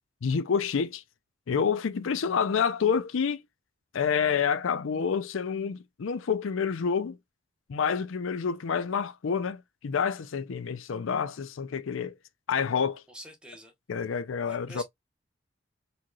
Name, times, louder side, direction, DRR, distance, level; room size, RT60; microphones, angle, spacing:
voice 1, 0.2-1.0 1.5-3.4 3.9-7.2 7.7-12.1 12.5-13.0 13.9-14.8, left 6 dB, 85° left, 0.5 m, -28 dB
voice 2, 13.1-13.7 14.5-14.8, equal, 5° right, 0.9 m, -46 dB
4.1 x 3.1 x 2.3 m
head